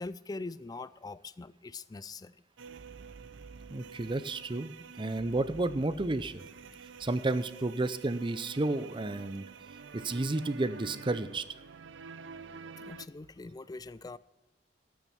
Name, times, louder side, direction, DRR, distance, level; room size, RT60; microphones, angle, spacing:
voice 1, 0.0-2.4 12.8-14.2, left 3 dB, 20° left, 17 dB, 0.4 m, -42 dB
sound 1, 2.6-13.1, right 5 dB, 85° right, 0.5 m, -48 dB
voice 2, 3.7-6.4 7.0-9.4 9.9-11.4, right 2 dB, 25° right, 13 dB, 0.6 m, -31 dB
12.5 x 8.9 x 5.7 m, 1.1 s
head